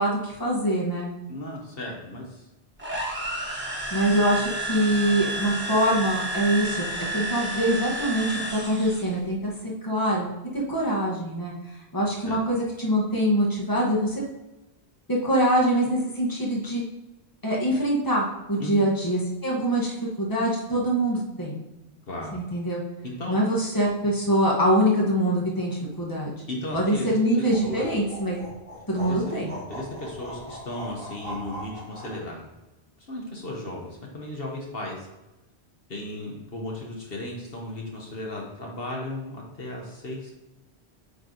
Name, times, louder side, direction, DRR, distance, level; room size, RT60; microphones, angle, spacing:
voice 1, 0.0-1.1 3.9-6.9 7.1-10.3 10.5-11.5 11.9-14.2 15.1-16.8 17.4-21.6 22.3-22.8 23.3-26.3 26.7-28.4 28.9-29.5, right 1 dB, 20° left, -3 dB, 1.4 m, -24 dB
voice 2, 1.3-2.5 12.2-12.4 18.6-18.8 22.1-22.4 23.0-23.4 26.5-27.9 29.0-29.2 29.7-32.4 33.1-35.1 35.9-40.3, left 1 dB, 60° left, -1 dB, 1.4 m, -35 dB
sound 1, 2.8-9.1, right 1 dB, 10° right, 1.3 m, -31 dB
sound 2, 27.5-32.2, equal, 55° right, 1.9 m, -40 dB
9.0 x 3.4 x 3.9 m, 1.0 s
omnidirectional pair, 1.1 m